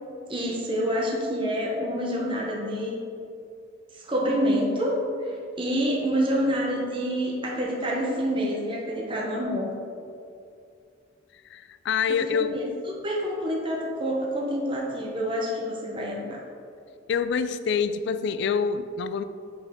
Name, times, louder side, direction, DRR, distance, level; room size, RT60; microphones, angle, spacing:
voice 1, 0.3-3.0 4.1-4.9 5.6-9.7 12.1-12.7 13.0-16.4, equal, 25° right, -3 dB, 0.9 m, -27 dB
voice 2, 11.5-12.5 17.1-19.2, left 6 dB, 60° left, 12 dB, 0.3 m, -26 dB
6.1 x 5.3 x 3.6 m, 2.4 s
head